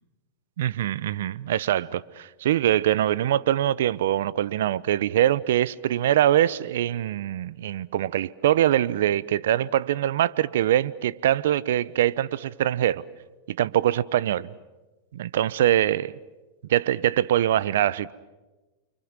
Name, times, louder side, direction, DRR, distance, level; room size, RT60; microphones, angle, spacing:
voice 1, 0.6-13.0 13.5-14.5 15.1-16.2 16.7-18.1, right 12 dB, 75° right, 0.8 m, -23 dB
30.0 x 25.5 x 7.4 m
hypercardioid pair, 100°, 0 cm